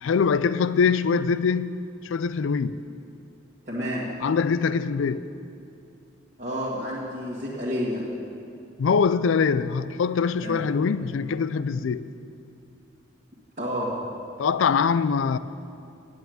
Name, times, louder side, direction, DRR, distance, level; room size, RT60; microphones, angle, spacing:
voice 1, 0.0-2.7 4.2-5.2 8.8-12.1 14.4-15.4, left 5 dB, 70° left, 0.4 m, -23 dB
voice 2, 3.7-4.1 6.4-8.3 10.4-10.6 13.6-14.1, equal, 35° right, 1.8 m, -30 dB
9.1 x 8.5 x 9.2 m
head